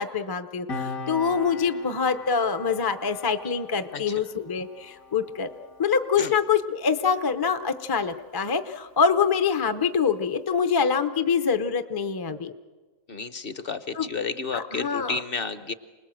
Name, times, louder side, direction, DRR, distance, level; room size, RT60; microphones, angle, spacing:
voice 1, 0.0-5.5 5.8-12.5 13.9-14.1 14.5-15.2, left 6 dB, 25° left, 8 dB, 0.5 m, -25 dB
Piano, 0.7-7.7 8.0-8.2, left 4 dB, 75° left, 2.3 m, -40 dB
voice 2, 13.1-15.7, left 4 dB, 45° left, 12 dB, 1.0 m, -32 dB
28.5 x 20.0 x 7.7 m, 1.4 s
omnidirectional pair, 1.5 m